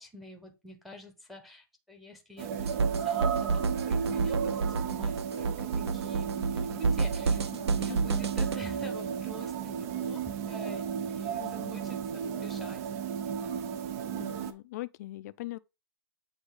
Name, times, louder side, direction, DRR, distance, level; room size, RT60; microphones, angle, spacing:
voice 1, 0.0-13.6, left 1 dB, ahead, 1.0 m, -48 dB
sound 1, 2.4-14.5, right 7 dB, 35° right, 0.6 m, -34 dB
sound 2, 2.6-8.6, right 4 dB, 85° right, 0.7 m, -29 dB
voice 2, 7.5-8.0 11.4-11.9 14.2-15.6, left 17 dB, 40° left, 0.4 m, -42 dB
8.1 x 2.7 x 4.8 m
hypercardioid pair, 145°, 13 cm